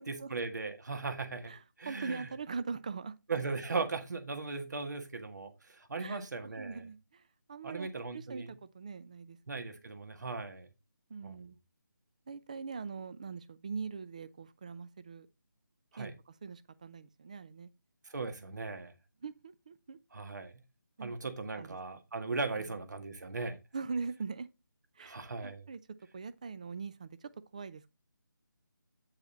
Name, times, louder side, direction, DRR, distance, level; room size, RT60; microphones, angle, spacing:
voice 1, 0.1-1.5 1.8-2.3 3.3-6.8 7.6-8.5 9.5-10.7 11.2-11.4 15.9-16.1 18.1-18.9 20.1-20.5 21.0-23.6 25.0-25.6, right 4 dB, 60° right, 1.8 m, -38 dB
voice 2, 1.5-3.2 6.0-6.2 6.6-7.2 7.5-9.4 11.1-11.6 12.3-15.3 16.0-17.7 19.2-20.0 21.0-21.2 21.5-21.8 22.6-22.7 23.7-24.5 25.0-25.8 26.1-27.9, right 5 dB, 20° right, 0.4 m, -42 dB
9.1 x 4.8 x 4.2 m
figure-of-eight pair, 165°, 11 cm